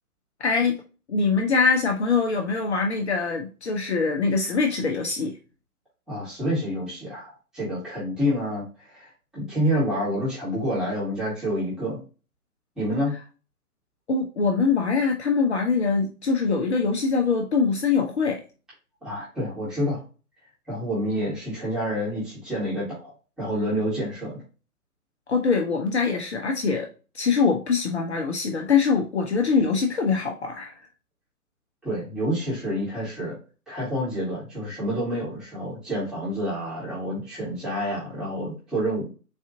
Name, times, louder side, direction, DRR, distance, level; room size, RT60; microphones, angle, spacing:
voice 1, 0.4-0.8 1.1-5.3 14.1-18.4 25.3-26.9 27.1-30.7, left 5 dB, 45° left, 2 dB, 0.6 m, -23 dB
voice 2, 6.1-12.0 12.8-13.1 19.0-20.0 20.7-23.1 23.4-24.4 31.8-33.3 33.7-39.1, equal, ahead, -10 dB, 1.2 m, -28 dB
4.1 x 2.5 x 2.5 m, 0.34 s
figure-of-eight pair, 135°, 46 cm